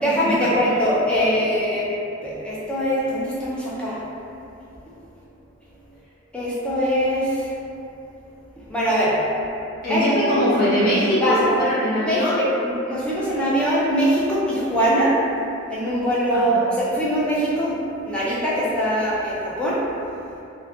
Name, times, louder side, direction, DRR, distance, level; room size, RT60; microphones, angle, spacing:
voice 1, 0.0-1.9 2.2-4.0 6.3-7.5 8.7-9.2 9.9-10.4 11.2-11.6 12.0-15.2 15.7-17.8 18.1-19.8, equal, 5° left, -9 dB, 0.4 m, -22 dB
voice 2, 9.8-12.4 16.3-16.6, equal, 45° left, -10 dB, 0.7 m, -22 dB
2.4 x 2.1 x 2.6 m, 2.7 s
head